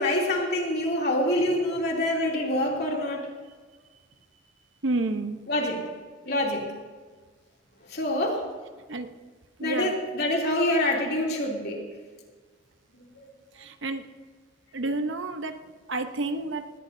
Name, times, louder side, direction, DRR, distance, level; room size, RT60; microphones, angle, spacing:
voice 1, 0.0-3.2 5.5-5.9 6.2-6.6 7.9-8.4 9.6-11.8, left 1 dB, 55° left, -1 dB, 2.9 m, -26 dB
voice 2, 4.8-5.4 8.9-9.1 9.6-9.9 13.5-14.0 14.7-15.6 15.9-16.7, right 2 dB, 70° right, 8 dB, 0.9 m, -30 dB
18.5 x 18.0 x 2.7 m, 1.5 s
head